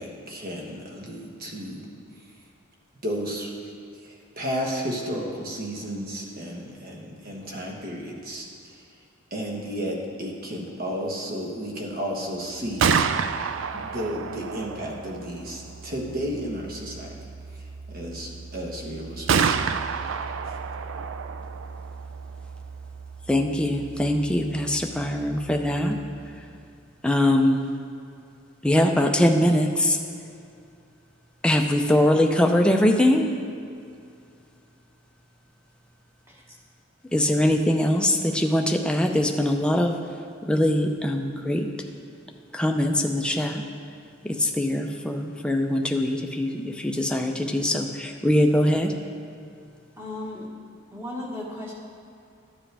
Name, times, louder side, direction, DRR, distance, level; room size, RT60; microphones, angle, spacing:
voice 1, 0.0-1.9 2.2-2.3 3.0-3.5 4.0-8.9 9.3-13.0 13.7-17.2 17.5-19.7, equal, 45° right, 0 dB, 1.2 m, -33 dB
Gunshot gunfire, 12.6-26.4, right 6 dB, 65° right, 0.4 m, -31 dB
voice 2, 23.3-26.0 27.0-27.7 28.6-30.0 31.4-33.3 37.1-40.0 40.5-41.7 42.5-43.6 44.2-48.9, left 1 dB, 5° left, 3 dB, 0.5 m, -22 dB
voice 3, 50.0-50.5 50.9-51.7, left 1 dB, 10° right, -4 dB, 1.4 m, -35 dB
12.5 x 7.4 x 3.4 m, 2.4 s
head